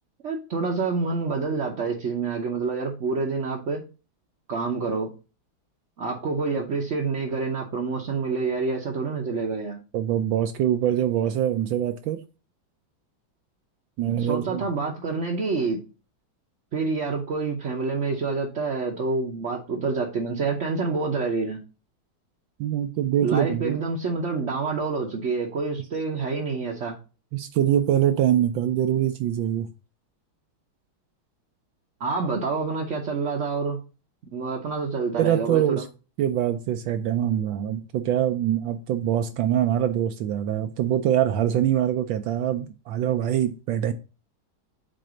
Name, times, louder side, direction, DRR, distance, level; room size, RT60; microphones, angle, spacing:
voice 1, 0.2-3.8 4.5-5.1 6.0-9.8 14.1-15.8 16.7-21.6 23.2-27.0 32.0-33.8 34.3-35.8, right 4 dB, 50° right, 0.9 m, -27 dB
voice 2, 9.9-12.2 14.0-14.7 22.6-23.8 27.3-29.7 35.1-35.9 36.2-43.9, right 11 dB, 75° right, 1.3 m, -24 dB
7.5 x 2.6 x 5.0 m
omnidirectional pair, 2.2 m